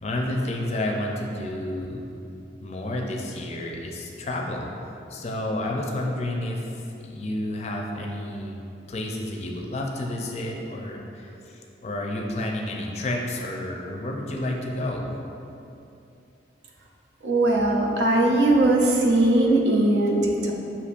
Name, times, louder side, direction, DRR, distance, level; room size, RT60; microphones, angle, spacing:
voice 1, 0.0-2.1 2.6-4.7 5.1-8.6 8.9-15.1, left 1 dB, 40° left, 1 dB, 0.4 m, -30 dB
voice 2, 17.2-20.5, right 2 dB, 80° right, 0 dB, 0.6 m, -20 dB
6.6 x 2.8 x 2.5 m, 2.8 s
head